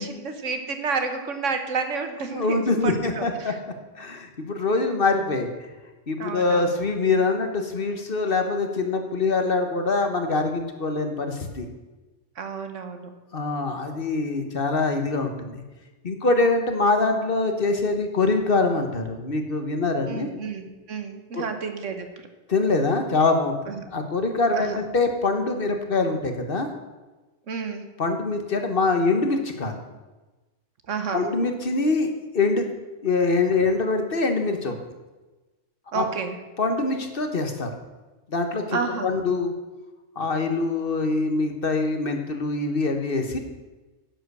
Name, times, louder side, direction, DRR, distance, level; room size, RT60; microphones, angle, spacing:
voice 1, 0.0-3.6 6.2-6.7 12.4-13.1 20.1-22.1 23.7-23.8 24.6-24.8 27.5-27.9 30.9-31.3 35.9-36.4 38.7-39.2, right 5 dB, 80° right, 7 dB, 1.5 m, -30 dB
voice 2, 2.3-3.5 4.0-5.5 6.1-11.7 13.3-15.6 16.0-20.3 21.4-21.5 22.5-23.5 23.9-26.7 28.0-29.8 31.1-32.7 33.0-34.8 35.9-36.0 36.6-37.7 38.3-39.5 40.2-43.4, left 3 dB, 50° left, 6 dB, 1.3 m, -24 dB
10.5 x 7.7 x 6.7 m, 1.2 s
omnidirectional pair, 1.3 m